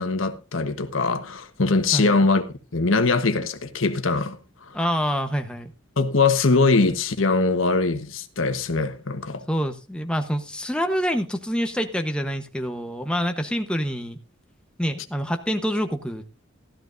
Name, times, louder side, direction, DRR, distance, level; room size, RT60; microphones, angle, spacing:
voice 1, 0.0-2.4 2.7-4.4 4.7-4.8 6.0-9.4, left 3 dB, 75° left, 1.2 m, -22 dB
voice 2, 1.9-2.3 4.7-5.7 9.5-14.2 14.8-16.2, equal, 5° left, 1.0 m, -26 dB
16.0 x 12.5 x 2.6 m
head